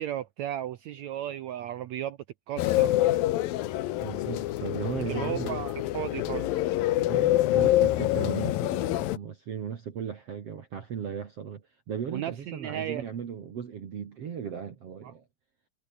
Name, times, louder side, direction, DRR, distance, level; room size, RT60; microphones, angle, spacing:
voice 1, 0.0-2.2 2.5-3.0 5.1-6.6 12.1-13.0 15.0-15.1, right 11 dB, 75° right, 1.7 m, -35 dB
sound 1, 2.6-9.2, left 15 dB, 80° left, 2.8 m, -26 dB
voice 2, 4.0-5.6 7.0-15.2, right 7 dB, 50° right, 2.6 m, -37 dB
omnidirectional pair, 4.2 m